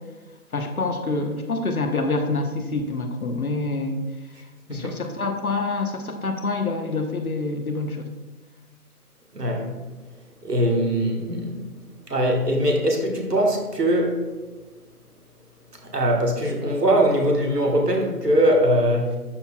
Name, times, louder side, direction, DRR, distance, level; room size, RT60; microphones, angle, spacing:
voice 1, 0.5-4.0 4.7-8.1, left 3 dB, 65° left, 5 dB, 1.1 m, -26 dB
voice 2, 9.3-9.7 10.4-11.7 12.1-14.2 15.9-19.2, right 1 dB, 85° right, 1 dB, 1.5 m, -21 dB
12.0 x 4.1 x 2.3 m, 1.2 s
figure-of-eight pair, 165°, 46 cm